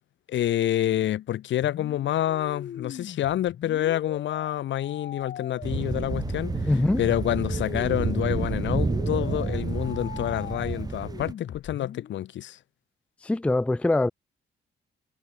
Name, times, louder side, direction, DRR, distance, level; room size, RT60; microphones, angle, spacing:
voice 1, 0.3-6.7 7.0-12.6, left 12 dB, 85° left, 1.2 m, -28 dB
sound 1, 2.2-12.1, left 9 dB, 50° left, 0.7 m, -41 dB
sound 2, 5.6-11.3, right 4 dB, 20° right, 1.3 m, -29 dB
voice 2, 6.7-7.0 13.2-14.1, left 2 dB, 5° left, 0.4 m, -23 dB
cardioid pair, 140°, 19 cm